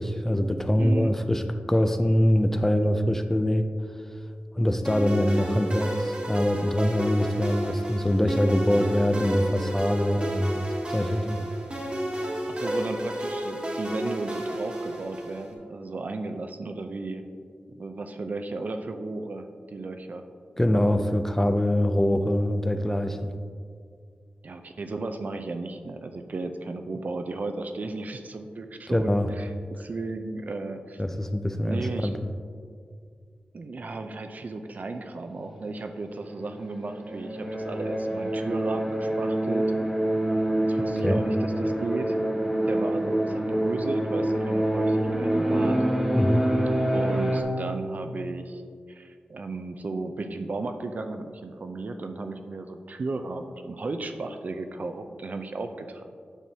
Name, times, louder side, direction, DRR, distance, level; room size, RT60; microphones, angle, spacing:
voice 1, 0.0-1.4 1.7-3.7 4.6-10.6 10.9-11.5 20.6-23.3 28.9-29.3 31.0-32.1 41.0-41.2 46.1-46.4, left 1 dB, 10° left, 7 dB, 0.4 m, -24 dB
voice 2, 0.8-1.1 12.5-17.2 17.8-19.4 19.7-20.2 24.4-31.0 31.7-32.1 33.5-39.6 40.6-42.2 42.6-45.8 46.9-48.6 48.9-56.0, right 3 dB, 55° right, 7 dB, 0.5 m, -34 dB
sound 1, 4.8-15.5, right 1 dB, 35° right, 1.3 m, -31 dB
sound 2, 36.2-47.4, right 1 dB, 5° right, 1.1 m, -26 dB
9.0 x 6.1 x 2.8 m, 2.1 s
wide cardioid pair, 85°, 3 cm